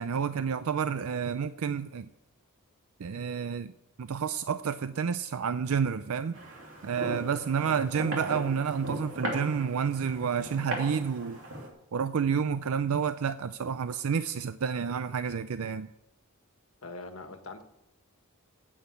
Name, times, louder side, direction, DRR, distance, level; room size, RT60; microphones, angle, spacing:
voice 1, 0.0-2.1 3.0-3.7 4.0-6.4 6.8-11.4 11.9-15.9, right 6 dB, 75° right, 12 dB, 0.5 m, -30 dB
sound 1, 6.3-11.7, right 1 dB, 60° right, 3.0 m, -38 dB
voice 2, 16.8-17.6, left 3 dB, 70° left, 6 dB, 1.4 m, -42 dB
9.6 x 8.7 x 8.3 m, 0.87 s
head